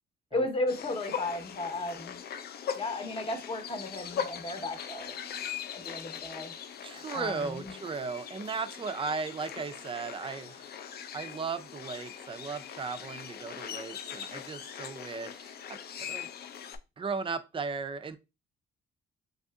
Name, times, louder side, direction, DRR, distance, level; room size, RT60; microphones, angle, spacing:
voice 1, 0.3-2.2 2.7-5.2 5.7-6.5 7.1-7.7, left 2 dB, 30° left, 0.8 m, -34 dB
sound 1, 0.7-16.8, left 8 dB, 55° left, 0.4 m, -41 dB
voice 2, 6.8-10.7 11.1-16.3 17.0-18.2, right 5 dB, 25° right, 0.4 m, -36 dB
3.4 x 2.6 x 2.3 m
cardioid pair, 90°, 20 cm